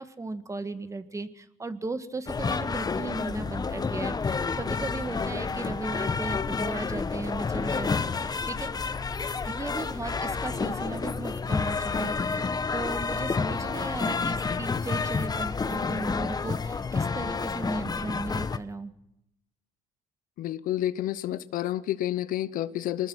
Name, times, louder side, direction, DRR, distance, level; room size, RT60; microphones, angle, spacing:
voice 1, 0.0-8.8 9.4-18.9, right 3 dB, 20° right, 11 dB, 1.6 m, -36 dB
sound 1, 2.3-18.6, left 4 dB, 25° left, 1.0 m, -29 dB
voice 2, 20.4-23.1, left 13 dB, 70° left, 16 dB, 0.9 m, -30 dB
23.5 x 20.0 x 6.3 m, 0.81 s
supercardioid pair, 85°, 15 cm